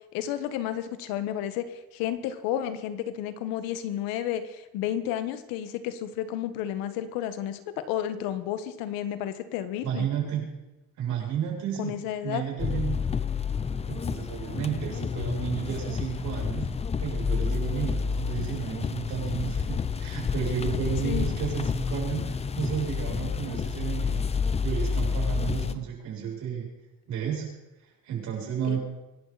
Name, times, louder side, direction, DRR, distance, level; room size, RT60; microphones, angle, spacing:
voice 1, 0.1-7.6 7.9-10.1 11.8-12.4 21.0-21.3 25.6-25.8 28.6-28.8, left 11 dB, 90° left, 11 dB, 1.6 m, -32 dB
voice 2, 9.8-10.4 11.0-12.0 12.2-13.0 13.9-16.7 17.0-24.3 24.6-26.7 27.1-27.5 27.8-28.8, right 8 dB, 55° right, -2 dB, 7.6 m, -32 dB
sound 1, 12.6-25.7, left 5 dB, 20° left, 0.6 m, -29 dB
25.5 x 12.0 x 4.2 m, 1.0 s
cardioid pair, 145°, 34 cm